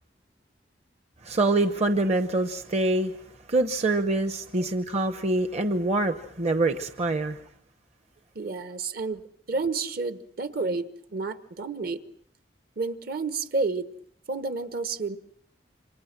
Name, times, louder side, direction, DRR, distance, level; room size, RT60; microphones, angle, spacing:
voice 1, 1.2-3.1 3.5-7.4, right 2 dB, 40° right, 9 dB, 0.9 m, -25 dB
voice 2, 8.3-9.2 9.5-12.0 12.8-13.9 14.3-15.2, right 3 dB, 55° right, 10 dB, 1.3 m, -30 dB
28.5 x 25.5 x 6.0 m, 0.67 s
head